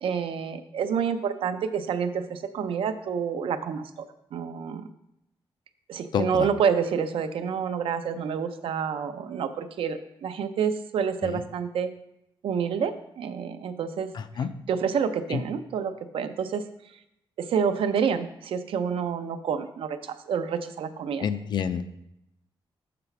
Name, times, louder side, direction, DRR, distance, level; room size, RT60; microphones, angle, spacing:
voice 1, 0.0-3.9 4.3-4.9 5.9-11.9 12.4-14.1 14.7-16.6 17.4-21.3, right 7 dB, 75° right, 9 dB, 0.5 m, -28 dB
voice 2, 6.1-6.5 11.2-11.4 14.1-14.5 15.3-15.4 21.2-21.8, left 7 dB, 55° left, 11 dB, 0.4 m, -28 dB
6.8 x 4.0 x 5.8 m, 0.82 s
wide cardioid pair, 175°, 9 cm